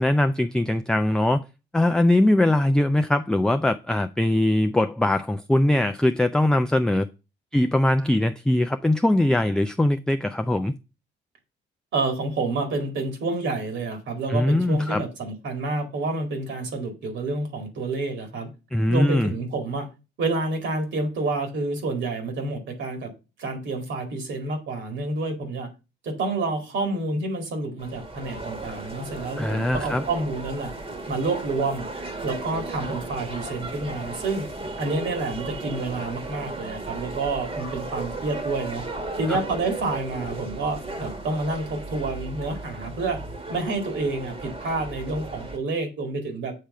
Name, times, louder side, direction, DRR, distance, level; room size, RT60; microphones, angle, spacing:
voice 1, 0.0-1.4 1.7-7.1 7.5-10.7 14.3-15.0 18.7-19.3 29.4-30.0 39.3-39.4, left 1 dB, 5° left, 0.4 m, -21 dB
voice 2, 11.9-18.5 18.9-19.9 20.2-23.1 23.4-25.7 26.0-30.7 31.1-34.5 34.8-38.8 39.2-43.2 43.5-46.5, right 3 dB, 70° right, 2.2 m, -28 dB
sound 1, 27.8-45.6, right 2 dB, 30° right, 1.4 m, -35 dB
7.6 x 3.4 x 5.4 m
cardioid pair, 90°, 20 cm